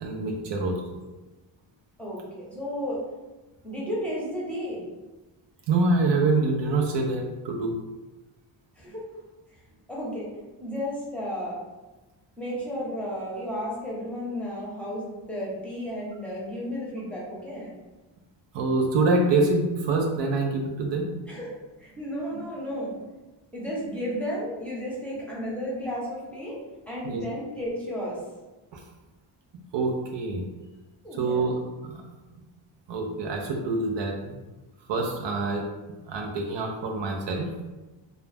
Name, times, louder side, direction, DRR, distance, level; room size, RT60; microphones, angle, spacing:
voice 1, 0.0-0.8 5.7-7.8 18.5-21.1 27.0-27.2 28.7-28.8 29.7-30.4 31.2-31.5 31.8-32.0 32.9-34.3 34.9-35.6 36.1-37.5, right 3 dB, 65° right, 1 dB, 0.5 m, -25 dB
voice 2, 2.0-3.1 3.6-4.9 8.8-9.2 9.9-10.3 10.6-11.6 12.4-17.7 21.3-23.1 23.5-28.2 31.0-31.5, equal, 5° left, -6 dB, 0.8 m, -33 dB
2.3 x 2.1 x 3.2 m, 1.1 s
cardioid pair, 100°, 47 cm